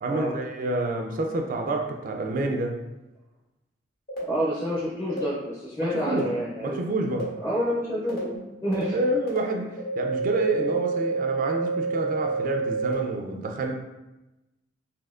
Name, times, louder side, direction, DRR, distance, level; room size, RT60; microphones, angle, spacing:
voice 1, 0.0-2.7 5.8-6.3 6.6-7.3 8.3-8.4 8.9-13.7, right 2 dB, 45° right, 2 dB, 0.4 m, -28 dB
sound 1, 4.1-4.2 5.1-5.2 6.1-6.2 7.1-7.2 8.1-8.2 8.7-8.8 9.3-9.4 9.8-12.9, right 4 dB, 55° left, 1.3 m, -28 dB
voice 2, 4.3-6.8 7.4-8.3 8.6-9.0, equal, 20° left, -7 dB, 0.6 m, -28 dB
4.1 x 2.7 x 2.4 m, 1.0 s
head